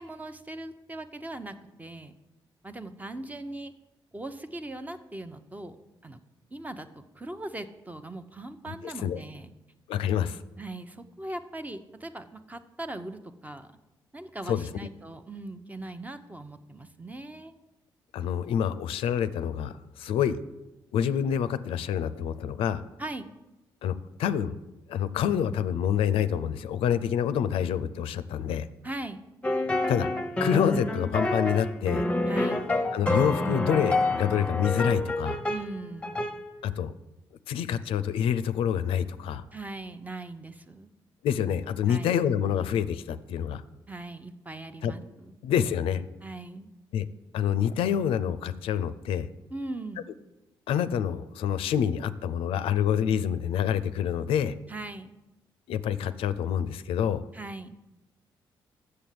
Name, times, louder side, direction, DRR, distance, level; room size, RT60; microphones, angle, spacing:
voice 1, 0.0-2.1 2.6-3.7 4.1-5.8 6.0-6.2 6.5-9.5 10.6-13.7 14.1-17.5 23.0-23.3 28.8-29.2 32.3-32.6 35.5-36.1 39.5-40.9 41.9-42.1 43.9-45.4 46.2-46.7 49.5-50.0 54.7-55.1 57.3-57.7, right 2 dB, 15° right, 9 dB, 0.7 m, -40 dB
voice 2, 8.7-9.2 9.9-10.4 14.5-14.7 18.1-20.4 20.9-22.8 23.8-24.6 24.9-28.7 29.9-30.1 30.4-32.0 32.9-35.4 36.6-36.9 37.5-39.4 41.2-43.6 44.8-44.9 45.4-46.0 46.9-47.0 47.3-49.3 50.7-54.6 55.7-57.2, left 9 dB, 85° left, 13 dB, 0.4 m, -27 dB
sound 1, 29.4-35.7 36.0-36.4, left 2 dB, 10° left, 0.8 m, -28 dB
7.0 x 6.6 x 7.6 m, 1.0 s
cardioid pair, 75°, 9 cm